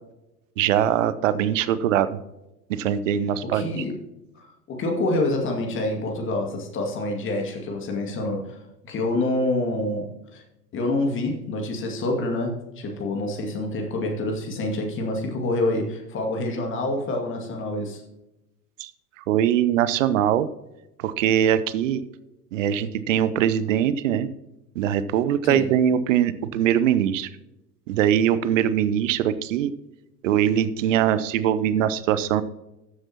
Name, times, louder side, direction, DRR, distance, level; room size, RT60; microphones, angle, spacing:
voice 1, 0.6-2.2 2.7-3.7 18.8-18.9 19.2-20.5 21.0-22.0 22.5-24.3 24.8-27.3 27.9-29.7 30.2-32.4, right 10 dB, 50° right, 14 dB, 0.8 m, -22 dB
voice 2, 3.5-4.0 4.7-8.6 8.8-10.0 10.3-10.4 10.7-18.0 25.4-25.6, left 2 dB, 25° left, 1 dB, 2.2 m, -27 dB
14.0 x 7.8 x 2.9 m, 0.93 s
figure-of-eight pair, 90°, 48 cm